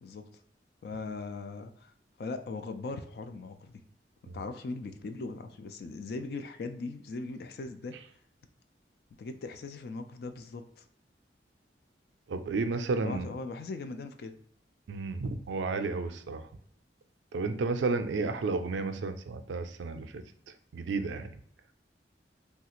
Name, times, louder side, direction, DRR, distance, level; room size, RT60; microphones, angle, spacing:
voice 1, 0.8-1.9 2.2-3.8 4.3-8.0 9.2-10.8 13.0-14.3, left 3 dB, 55° left, 8 dB, 0.3 m, -39 dB
voice 2, 12.3-13.3 14.9-16.4 17.3-20.1 20.7-21.3, right 3 dB, 85° right, 8 dB, 0.4 m, -32 dB
3.2 x 2.4 x 2.9 m, 0.67 s
head